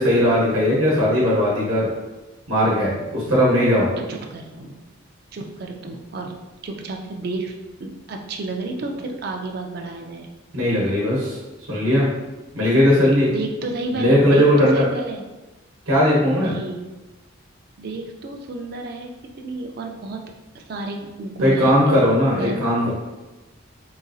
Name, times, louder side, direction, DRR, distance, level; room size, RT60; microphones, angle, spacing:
voice 1, 0.0-1.9 2.5-3.9 10.5-11.4 11.7-12.1 12.5-13.3 13.9-14.8 15.9-16.5 21.4-22.9, equal, 75° right, -6 dB, 0.9 m, -18 dB
voice 2, 4.0-4.8 5.3-6.3 6.6-7.5 7.8-10.3 13.3-15.2 16.4-16.8 17.8-19.1 19.4-20.3 20.5-22.0 22.4-22.6, right 2 dB, 50° right, 3 dB, 0.4 m, -31 dB
4.0 x 2.6 x 2.3 m, 1.1 s
head